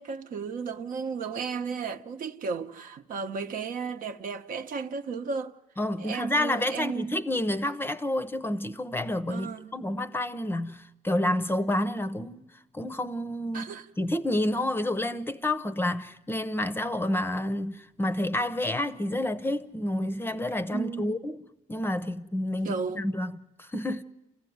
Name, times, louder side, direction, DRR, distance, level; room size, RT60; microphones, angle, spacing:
voice 1, 0.0-5.5 6.0-7.2 9.3-9.8 13.5-13.9 20.7-21.2 22.6-23.1, right 5 dB, 55° right, 1.0 m, -34 dB
voice 2, 5.8-12.4 12.7-21.4 21.7-24.0, left 1 dB, 15° left, 0.7 m, -29 dB
28.0 x 15.0 x 9.4 m
cardioid pair, 110°, 17 cm